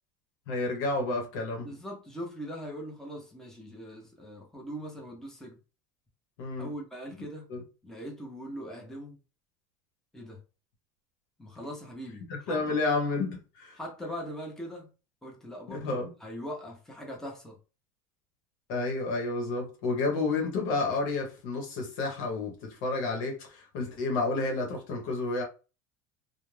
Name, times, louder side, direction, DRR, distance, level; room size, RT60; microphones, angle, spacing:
voice 1, 0.5-1.7 6.4-6.7 7.2-7.6 12.3-13.8 15.7-16.1 18.7-25.4, left 3 dB, 75° left, 1.0 m, -30 dB
voice 2, 1.6-5.6 6.6-7.5 7.8-9.2 10.1-10.4 11.4-12.8 13.8-14.9 15.2-17.6, equal, 5° left, 0.8 m, -41 dB
2.5 x 2.2 x 3.2 m
supercardioid pair, 125°, 10 cm